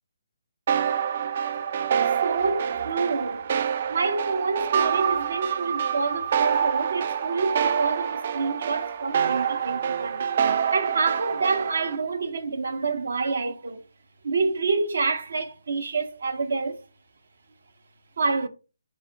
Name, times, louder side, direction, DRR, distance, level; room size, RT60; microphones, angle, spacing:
sound 1, 0.7-12.0, right 8 dB, 45° right, 0.3 m, -26 dB
voice 1, 2.2-3.5 3.9-13.8 14.2-16.8 18.2-18.5, right 4 dB, 65° right, 0.7 m, -28 dB
4.8 x 2.5 x 4.4 m
hypercardioid pair, 155°, 0 cm